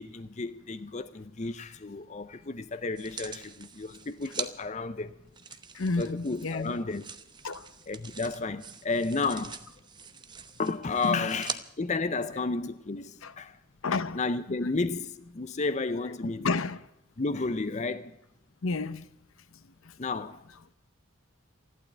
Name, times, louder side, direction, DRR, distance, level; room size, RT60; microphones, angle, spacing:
voice 1, 0.0-5.1 6.0-7.1 7.9-9.6 10.6-13.6 14.1-16.5 17.2-18.2 20.0-20.4, left 3 dB, 30° left, 0.6 m, -32 dB
sound 1, 3.0-4.5 5.3-11.6 12.3-12.4, right 6 dB, 20° right, 0.8 m, -42 dB
voice 2, 5.7-6.8 7.4-7.7 11.0-11.3 13.2-13.3 13.8-14.2 16.2-16.8 18.6-19.0 19.8-20.0, left 3 dB, 65° left, 0.8 m, -31 dB
14.5 x 12.0 x 8.2 m
head